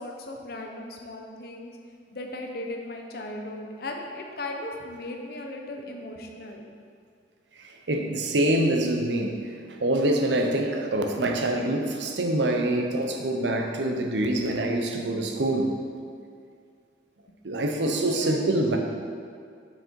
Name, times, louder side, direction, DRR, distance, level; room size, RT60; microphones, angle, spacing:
voice 1, 0.0-1.8 2.1-6.6 17.9-18.6, left 1 dB, 60° left, 2 dB, 0.8 m, -37 dB
voice 2, 7.6-15.7 17.4-18.8, right 1 dB, 85° right, 3 dB, 0.7 m, -25 dB
6.4 x 4.9 x 4.5 m, 2.2 s
head